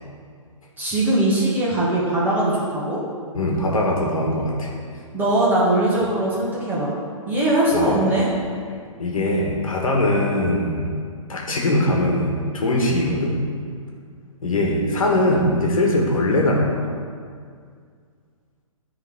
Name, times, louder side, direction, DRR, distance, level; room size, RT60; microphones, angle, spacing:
voice 1, 0.8-3.0 5.1-6.9 7.2-8.3, right 1 dB, 10° right, -7 dB, 1.6 m, -20 dB
voice 2, 3.3-4.7 7.7-8.0 9.0-10.9 11.3-13.4 14.4-16.9, left 1 dB, 80° left, -1 dB, 1.4 m, -21 dB
9.1 x 3.6 x 3.5 m, 2.1 s
hypercardioid pair, 130°, 17 cm